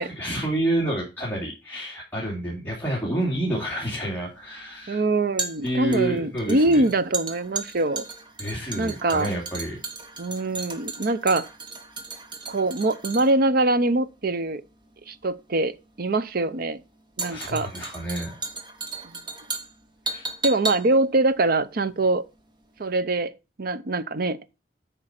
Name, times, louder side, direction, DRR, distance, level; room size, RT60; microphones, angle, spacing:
voice 1, 0.0-5.0 5.6-6.8 8.4-9.8 17.2-18.4 20.1-20.3, right 1 dB, 10° left, 2.5 m, -29 dB
sound 1, 3.2-22.5 22.8-22.9, right 3 dB, 25° right, 1.3 m, -36 dB
voice 2, 4.9-8.1 8.8-9.3 10.2-11.5 12.5-14.6 15.1-15.7 16.0-16.8 17.2-17.7 19.0-19.2 20.4-22.2 22.8-23.3 23.6-24.4, right 2 dB, 55° right, 0.7 m, -23 dB
8.9 x 5.2 x 5.9 m
head